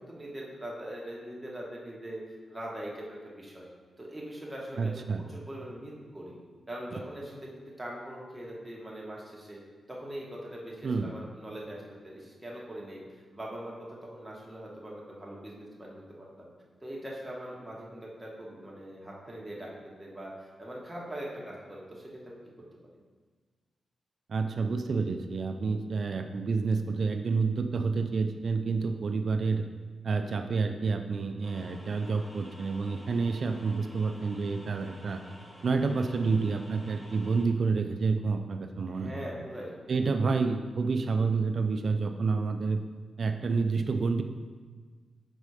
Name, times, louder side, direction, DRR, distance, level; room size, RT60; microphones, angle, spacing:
voice 1, 0.0-2.2 2.5-3.7 4.0-6.4 6.7-7.5 7.8-9.6 9.9-16.5 16.8-19.7 20.0-22.4 38.9-39.8, right 1 dB, 10° right, -4 dB, 1.3 m, -42 dB
voice 2, 4.8-5.2 10.8-11.1 24.3-29.6 30.0-35.2 35.6-39.2 39.9-42.8 43.2-44.2, right 4 dB, 55° right, 6 dB, 0.4 m, -29 dB
sound 1, 31.4-37.4, equal, 15° left, 1.1 m, -51 dB
5.4 x 4.2 x 4.8 m, 1.4 s
wide cardioid pair, 115°, 0 cm